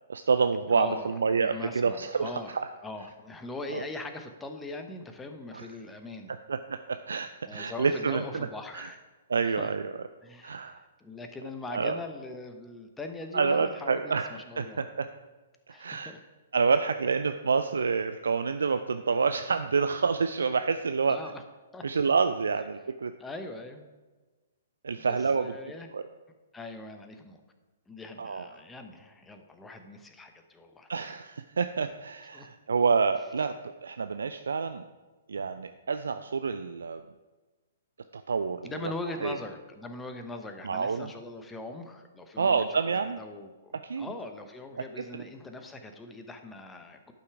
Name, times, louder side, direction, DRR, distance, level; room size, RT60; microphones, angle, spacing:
voice 1, 0.1-2.7 3.7-3.8 5.5-5.7 6.5-8.5 8.7-8.9 9.3-9.9 10.4-10.8 11.7-12.0 13.3-14.3 14.6-15.1 15.7-16.1 16.5-21.2 21.8-23.1 24.8-25.5 25.9-26.0 28.2-28.5 30.9-33.5 33.8-34.8 35.3-37.0 38.1-38.9 39.2-39.4 40.6-41.1 42.4-43.2 43.8-44.1 45.0-45.2, right 5 dB, 70° right, 9 dB, 0.4 m, -28 dB
voice 2, 0.7-1.1 1.4-2.5 2.8-6.3 7.4-9.0 9.4-9.7 10.2-14.8 15.7-16.2 21.1-21.4 21.7-21.9 23.2-23.8 25.0-25.9 26.5-27.4 27.9-30.9 32.3-32.5 38.6-47.1, left 2 dB, 10° left, 6 dB, 0.9 m, -41 dB
11.5 x 5.7 x 4.7 m, 1.3 s
figure-of-eight pair, 120°, 0 cm